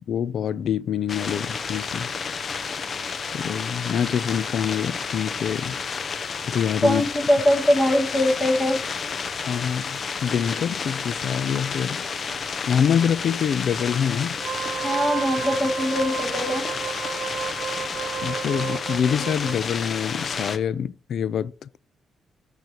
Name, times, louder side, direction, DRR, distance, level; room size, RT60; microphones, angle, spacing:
voice 1, 0.1-2.1 3.3-5.8 6.4-7.0 9.5-12.0 12.7-14.4 18.2-21.5, left 8 dB, 70° left, 0.5 m, -25 dB
sound 1, 1.1-20.6, left 5 dB, 45° left, 0.9 m, -31 dB
voice 2, 6.8-8.8 14.8-16.7, left 1 dB, 20° left, 2.3 m, -22 dB
Wind instrument woodwind instrument, 14.3-19.6, right 9 dB, 70° right, 0.6 m, -32 dB
19.0 x 6.6 x 2.9 m
cardioid pair, 110°, 0 cm